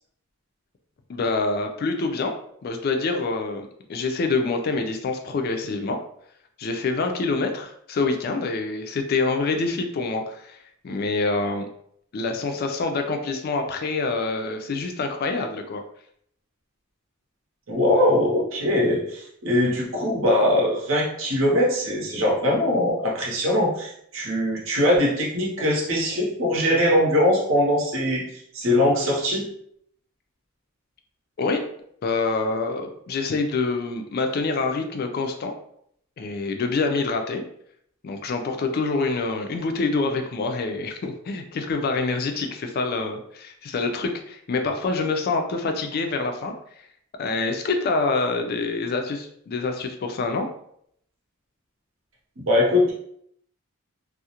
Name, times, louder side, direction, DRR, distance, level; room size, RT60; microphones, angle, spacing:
voice 1, 1.1-2.4 2.6-6.0 6.6-10.6 10.8-11.7 12.1-15.8 31.4-31.7 32.0-35.5 36.2-37.4 38.0-46.5 47.2-50.5, left 3 dB, 45° left, 5 dB, 0.3 m, -26 dB
voice 2, 17.7-28.2 28.5-29.5 52.4-52.9, left 1 dB, 65° right, -3 dB, 0.8 m, -21 dB
2.4 x 2.0 x 2.8 m, 0.68 s
head